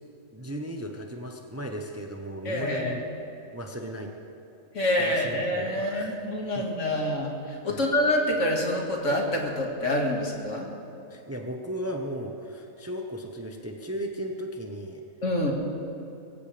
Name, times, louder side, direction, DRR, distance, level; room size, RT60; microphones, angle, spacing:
voice 1, 0.3-3.0 3.5-4.1 5.0-6.3 6.5-6.6 7.7-7.9 11.1-15.0, equal, 15° right, 3 dB, 0.8 m, -36 dB
voice 2, 2.5-3.0 4.7-10.7 15.2-15.5, left 1 dB, 60° left, 0 dB, 2.3 m, -27 dB
22.5 x 16.0 x 3.4 m, 2.9 s
omnidirectional pair, 1.4 m